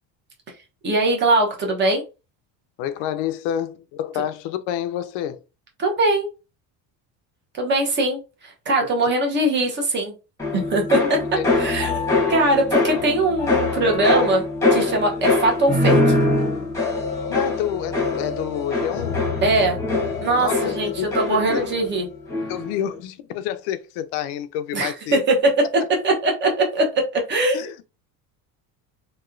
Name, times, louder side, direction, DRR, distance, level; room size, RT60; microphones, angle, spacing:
voice 1, 0.8-2.0 5.8-6.3 7.5-10.1 10.5-11.2 11.5-12.0 12.3-16.2 19.4-19.8 20.2-22.1 24.7-25.5 26.0-26.9 27.1-27.6, right 2 dB, 25° right, 0.8 m, -21 dB
voice 2, 2.8-5.4 9.0-9.1 11.0-11.5 17.3-19.2 20.4-21.7 22.5-25.2 27.5-27.7, left 11 dB, 75° left, 0.6 m, -28 dB
sound 1, 10.4-22.0 22.3-22.8, left 2 dB, 5° left, 1.0 m, -23 dB
3.0 x 2.8 x 2.4 m
cardioid pair, 170°, 41 cm